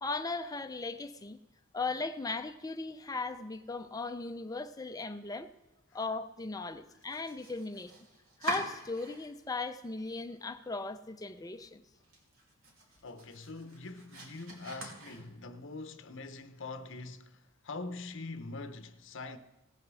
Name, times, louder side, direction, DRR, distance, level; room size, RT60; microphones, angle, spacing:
voice 1, 0.0-1.4 1.7-5.5 5.9-7.9 8.4-11.8, left 3 dB, 20° left, 0.5 m, -37 dB
Domestic sounds home sounds, 6.9-9.5 9.8-10.6 10.9-11.0 11.5-11.6 11.9-15.6, right 1 dB, 80° right, 2.7 m, -44 dB
voice 2, 13.0-19.4, left 3 dB, 65° left, 0.8 m, -43 dB
17.0 x 6.6 x 6.1 m
head